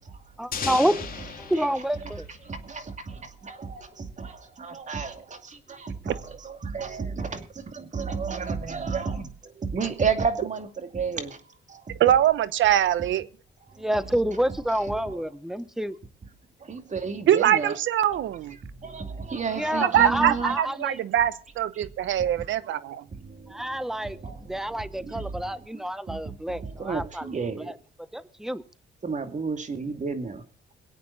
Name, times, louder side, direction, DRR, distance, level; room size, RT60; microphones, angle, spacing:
voice 1, 0.4-1.0 1.4-2.3 13.8-15.9 19.5-21.0 23.5-24.2 24.5-27.3 27.7-27.8 28.1-28.6, equal, ahead, 1.0 m, -28 dB
sound 1, 0.5-3.3, left 6 dB, 45° left, 3.1 m, -36 dB
voice 2, 2.5-11.4 11.7-12.0 13.8-13.9 15.1-15.2 16.6-17.8 18.8-20.6 23.1-27.7 29.0-30.4, right 5 dB, 35° right, 2.4 m, -32 dB
voice 3, 12.0-13.3 17.3-18.6 19.8-22.8, right 11 dB, 75° right, 0.9 m, -22 dB
23.0 x 8.5 x 4.0 m
cardioid pair, 90°, 20 cm